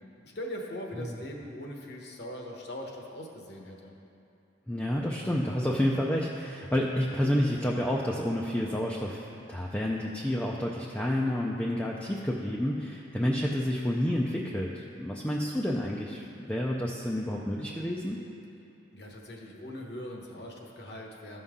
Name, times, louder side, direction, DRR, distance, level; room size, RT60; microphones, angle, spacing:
voice 1, 0.2-3.9 18.9-21.4, equal, 55° left, 0 dB, 1.1 m, -41 dB
voice 2, 4.7-18.2, left 1 dB, 5° left, -3 dB, 0.4 m, -29 dB
14.5 x 5.5 x 3.7 m, 2.8 s
head